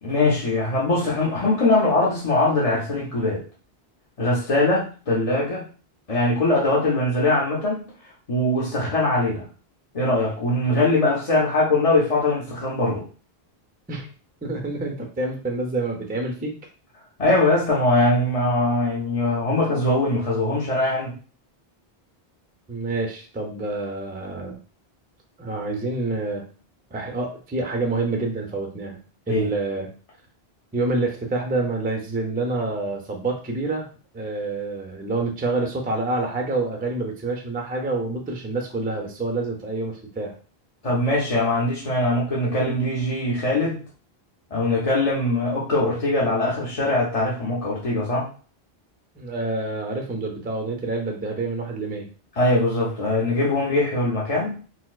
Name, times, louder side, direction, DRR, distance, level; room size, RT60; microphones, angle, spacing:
voice 1, 0.0-3.4 4.2-5.7 6.1-7.8 8.3-9.5 9.9-13.0 17.2-21.1 29.3-29.5 40.8-43.8 44.5-48.3 52.4-54.5, left 2 dB, 40° left, -4 dB, 0.7 m, -22 dB
voice 2, 14.4-16.6 17.2-17.5 22.7-24.6 25.4-26.4 26.9-29.0 29.3-29.9 30.7-33.9 34.1-40.3 49.1-52.1, right 3 dB, 15° right, 2 dB, 0.4 m, -27 dB
4.2 x 2.0 x 2.3 m, 0.38 s
omnidirectional pair, 1.1 m